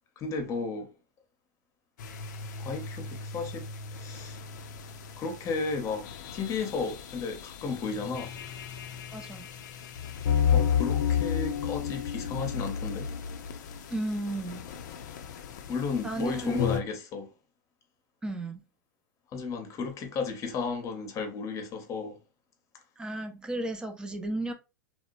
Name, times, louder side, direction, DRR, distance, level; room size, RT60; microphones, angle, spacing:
voice 1, 0.2-0.9 2.6-3.7 4.0-4.4 5.2-8.3 10.5-13.1 15.7-17.3 19.3-22.2, left 4 dB, 30° left, 0.8 m, -33 dB
sound 1, 2.0-16.8, left 8 dB, 70° left, 0.5 m, -33 dB
voice 2, 9.1-9.5 13.9-14.7 16.0-16.7 18.2-18.6 23.0-24.5, right 1 dB, 10° right, 0.5 m, -34 dB
2.9 x 2.1 x 2.5 m
hypercardioid pair, 110°, 10 cm